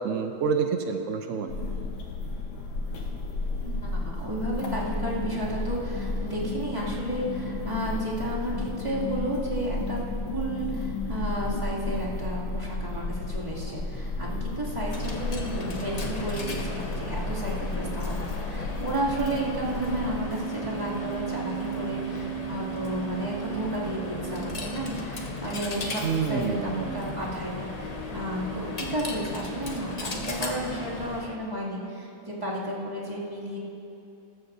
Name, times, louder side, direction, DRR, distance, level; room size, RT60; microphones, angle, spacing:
voice 1, 0.0-1.5 26.0-27.1, right 6 dB, 85° right, 6 dB, 0.7 m, -28 dB
sound 1, 1.5-20.3, left 3 dB, 90° left, 2.0 m, -33 dB
voice 2, 3.6-33.6, right 1 dB, 15° right, -7 dB, 2.5 m, -32 dB
Coin (dropping), 14.7-31.4, equal, 35° left, 0.6 m, -35 dB
19.0 x 14.0 x 2.7 m, 2.7 s
omnidirectional pair, 2.1 m